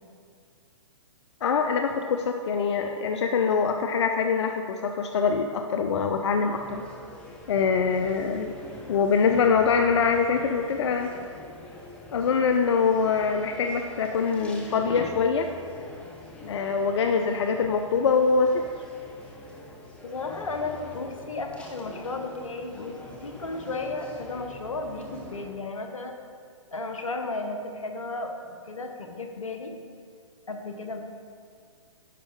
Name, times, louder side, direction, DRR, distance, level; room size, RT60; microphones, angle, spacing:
voice 1, 1.4-6.8 7.5-8.5 8.9-11.1 12.1-15.5 16.5-18.7, left 5 dB, 60° left, 5 dB, 0.5 m, -24 dB
sound 1, 6.1-25.5, left 2 dB, 5° left, 1.0 m, -44 dB
voice 2, 20.0-23.0 23.2-26.1 26.7-29.7 30.5-31.0, left 3 dB, 80° left, 5 dB, 1.0 m, -34 dB
10.0 x 6.0 x 3.7 m, 2.2 s
figure-of-eight pair, 125°, 17 cm